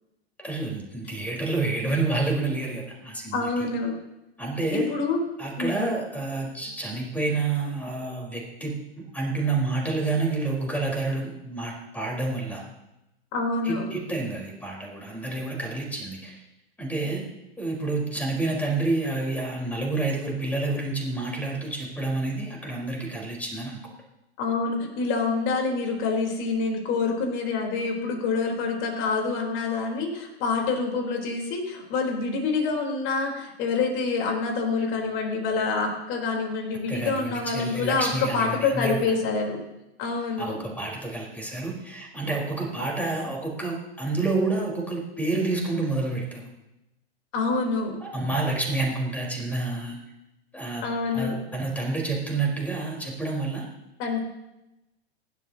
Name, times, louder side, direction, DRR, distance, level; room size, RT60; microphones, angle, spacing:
voice 1, 0.4-3.7 4.4-4.9 5.4-8.8 9.1-12.6 13.6-16.4 16.8-17.2 17.6-23.8 36.9-39.1 40.4-46.5 48.1-50.0 50.5-50.8 51.1-53.6, right 3 dB, 5° left, -1 dB, 4.3 m, -29 dB
voice 2, 3.3-3.9 4.7-5.2 5.6-6.0 13.3-13.9 17.1-17.3 24.4-39.6 40.0-40.6 47.3-48.0 50.8-51.4 54.0-54.2, left 4 dB, 40° left, 2 dB, 3.8 m, -27 dB
24.0 x 12.0 x 2.9 m, 0.94 s
figure-of-eight pair, 100°, 32 cm